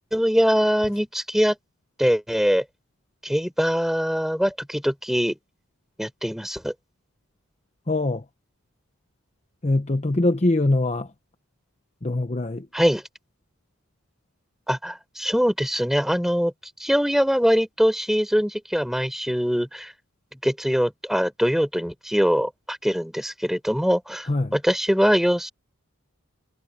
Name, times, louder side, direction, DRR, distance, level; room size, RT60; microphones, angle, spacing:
voice 1, 0.0-1.6 2.0-2.6 3.2-5.3 6.0-6.7 12.7-13.0 14.7-16.5 16.8-19.9 20.4-25.5, equal, ahead, 3.8 m, -22 dB
voice 2, 7.9-8.2 9.6-11.1 12.0-12.7 24.3-24.5, left 2 dB, 30° left, 0.8 m, -23 dB
head